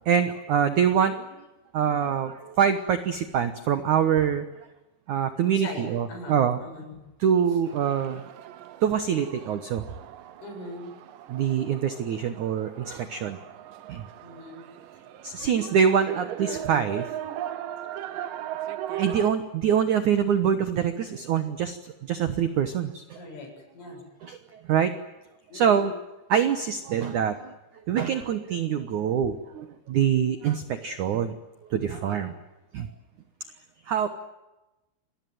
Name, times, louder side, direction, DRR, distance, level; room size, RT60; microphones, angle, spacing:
voice 1, 0.1-1.3 1.7-4.7 5.1-6.6 7.2-8.2 8.8-9.9 11.3-13.4 13.9-14.1 15.2-17.4 19.0-23.2 24.2-24.9 25.5-25.9 26.3-27.5 27.9-31.3 31.7-32.3 32.7-32.9 33.8-34.1, right 8 dB, 90° right, 10 dB, 1.7 m, -25 dB
voice 2, 5.6-7.0 10.4-10.9 14.2-14.7 23.2-24.0 25.5-25.9 31.9-32.3, left 1 dB, 90° left, 2 dB, 9.8 m, -41 dB
sound 1, 7.6-19.3, right 12 dB, 70° right, 2.2 m, -38 dB
27.0 x 20.0 x 9.4 m, 1.0 s
omnidirectional pair, 5.4 m